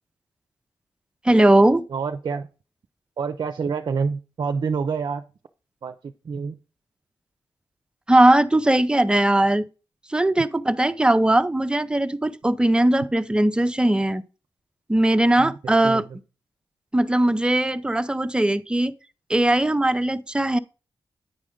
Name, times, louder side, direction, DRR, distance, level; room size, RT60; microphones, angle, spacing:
voice 1, 1.2-1.8 8.1-9.7 10.1-14.2 14.9-16.0 16.9-18.9 19.3-20.6, right 1 dB, 10° right, 0.5 m, -19 dB
voice 2, 1.9-2.5 3.2-5.2 5.8-6.6 15.4-16.2, right 5 dB, 55° right, 0.5 m, -28 dB
9.2 x 4.8 x 3.8 m
cardioid pair, 85°, 9 cm